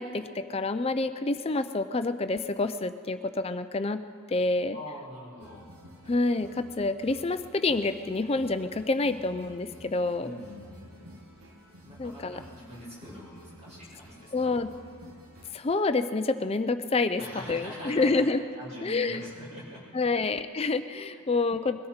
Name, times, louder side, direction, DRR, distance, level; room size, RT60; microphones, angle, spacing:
voice 1, 0.0-4.0 4.3-4.8 6.1-10.4 12.0-12.4 14.3-14.7 15.5-18.4 18.8-19.2 19.9-21.9, left 3 dB, 25° left, 10 dB, 0.4 m, -28 dB
voice 2, 4.7-5.7 10.2-11.2 11.8-14.5 17.2-18.2 18.6-19.9 20.1-20.2, equal, 30° right, -7 dB, 5.2 m, -43 dB
sound 1, 5.4-15.5, equal, 80° right, 2.0 m, -51 dB
21.5 x 13.5 x 4.4 m, 2.2 s
head